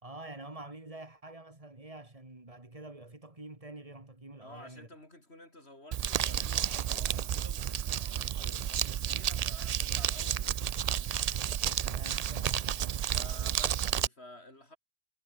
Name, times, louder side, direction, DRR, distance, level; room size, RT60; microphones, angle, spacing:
voice 1, 0.0-4.9 11.8-13.0, right 2 dB, 30° right, 2.9 m, -47 dB
voice 2, 4.4-11.2 13.1-14.8, left 1 dB, 75° left, 7.1 m, -52 dB
Crumpling crinkling, 5.9-14.1, right 9 dB, 55° right, 0.4 m, -31 dB
omnidirectional pair, 1.1 m